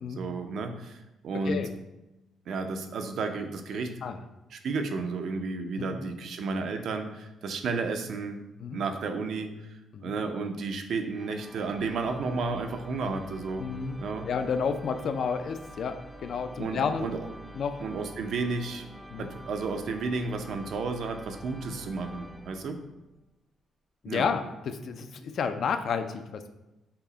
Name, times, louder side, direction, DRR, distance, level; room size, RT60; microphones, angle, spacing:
voice 1, 0.2-1.7 2.5-3.9 4.5-8.4 8.7-9.5 10.0-13.7 14.0-14.3 16.6-17.3 17.8-18.9 19.2-22.8 24.1-24.2, right 4 dB, 70° right, 6 dB, 0.5 m, -32 dB
sound 1, 11.1-23.1, equal, 5° right, 0.4 m, -47 dB
voice 2, 13.6-14.0 14.3-16.0 16.2-17.1 17.5-17.8 19.1-19.3 24.0-26.5, left 6 dB, 60° left, 9 dB, 0.4 m, -31 dB
5.6 x 2.0 x 3.8 m, 0.99 s
cardioid pair, 90°, 0 cm